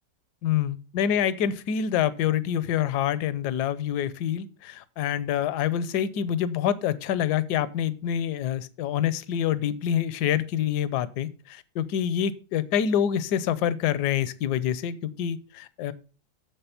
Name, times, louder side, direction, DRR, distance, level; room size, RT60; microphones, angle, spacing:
voice 1, 0.4-15.9, left 9 dB, 75° left, 16 dB, 1.2 m, -26 dB
7.3 x 6.9 x 5.7 m, 0.36 s
omnidirectional pair, 1.8 m